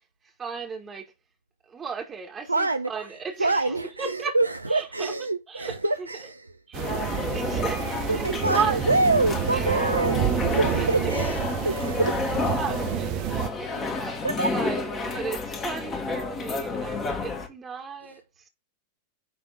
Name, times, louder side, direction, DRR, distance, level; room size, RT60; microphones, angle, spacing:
voice 1, 0.2-1.1 1.7-4.4 4.7-5.1 5.5-6.1 6.7-7.0 7.3-8.8 9.5-9.7 10.7-11.3 12.4-14.2 14.5-18.5, right 5 dB, 20° right, 1.8 m, -35 dB
voice 2, 2.4-6.6 8.1-12.2 14.1-14.6 18.0-18.2, right 2 dB, 80° right, 0.4 m, -26 dB
sound 1, 6.7-17.5, left 3 dB, 25° left, 1.9 m, -30 dB
sound 2, 6.7-13.5, right 12 dB, 45° right, 0.8 m, -29 dB
9.7 x 3.5 x 4.9 m
figure-of-eight pair, 90°, 0 cm